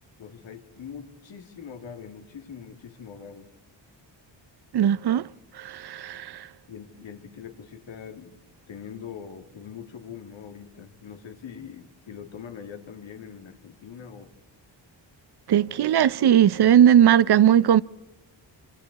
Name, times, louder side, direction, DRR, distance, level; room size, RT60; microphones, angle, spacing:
voice 1, 0.2-3.5 4.8-4.9 6.7-8.4 8.7-14.3, left 7 dB, 85° left, 2.6 m, -42 dB
voice 2, 4.7-5.3 5.5-6.5 15.5-17.8, right 10 dB, 60° right, 0.7 m, -18 dB
29.0 x 26.0 x 4.2 m
wide cardioid pair, 175°, 44 cm